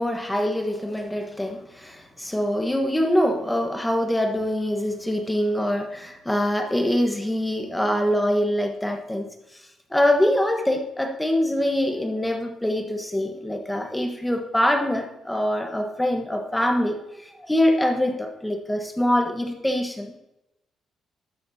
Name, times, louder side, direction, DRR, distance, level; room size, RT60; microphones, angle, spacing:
voice 1, 0.0-9.6 9.9-20.2, left 1 dB, 10° left, 4 dB, 1.3 m, -24 dB
12.0 x 7.8 x 2.8 m, 0.87 s
cardioid pair, 90°, 0 cm